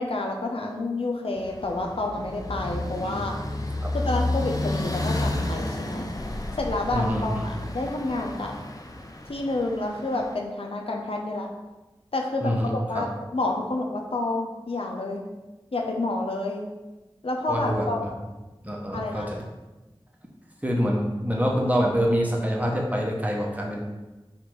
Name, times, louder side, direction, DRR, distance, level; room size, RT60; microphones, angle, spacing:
voice 1, 0.0-3.3 3.9-6.1 6.6-8.5 9.3-11.5 12.1-15.2 15.7-16.6 17.2-18.0 18.9-19.3, left 2 dB, 80° left, 1 dB, 0.6 m, -29 dB
sound 1, 1.4-10.3, left 1 dB, 40° left, 0.5 m, -31 dB
voice 2, 6.9-7.4 12.4-13.0 17.5-18.1 18.6-19.4 20.6-23.8, equal, 15° right, -1 dB, 0.9 m, -26 dB
4.3 x 2.6 x 4.7 m, 1.1 s
wide cardioid pair, 45°, 9 cm